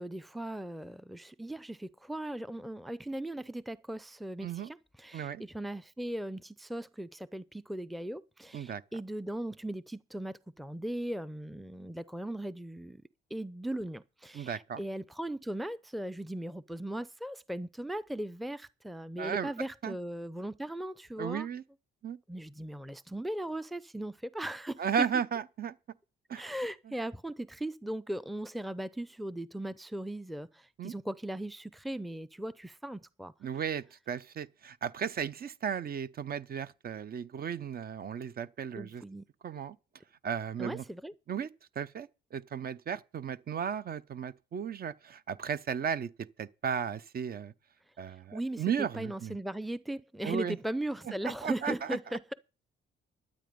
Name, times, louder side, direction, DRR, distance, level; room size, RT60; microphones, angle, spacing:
voice 1, 0.0-13.0 13.3-21.5 22.3-24.8 26.4-33.3 38.8-39.3 40.6-41.1 48.3-52.3, right 1 dB, ahead, 0.5 m, -38 dB
voice 2, 14.3-14.8 19.2-19.5 19.8-19.9 21.2-21.6 22.0-22.2 24.8-25.8 26.3-26.5 30.8-30.9 33.4-39.0 39.4-39.8 40.2-40.8 41.3-41.5 41.8-46.1 46.4-47.5 48.0-49.4 50.2-50.6 51.2-52.0, right 7 dB, 50° right, 0.7 m, -35 dB
12.5 x 8.8 x 5.2 m
cardioid pair, 90°, 20 cm